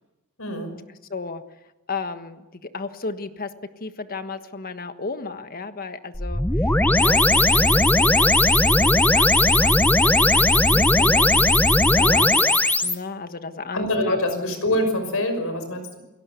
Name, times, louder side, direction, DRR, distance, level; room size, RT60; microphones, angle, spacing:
voice 1, 0.4-0.7 13.7-16.0, left 1 dB, 80° left, 7 dB, 6.0 m, -25 dB
voice 2, 1.1-1.4 1.9-3.5 3.8-8.4 8.6-14.5, left 4 dB, 45° left, 9 dB, 1.5 m, -34 dB
sound 1, 6.1-12.9, left 1 dB, 10° left, 0.9 m, -17 dB
29.0 x 17.5 x 8.3 m, 1.1 s
head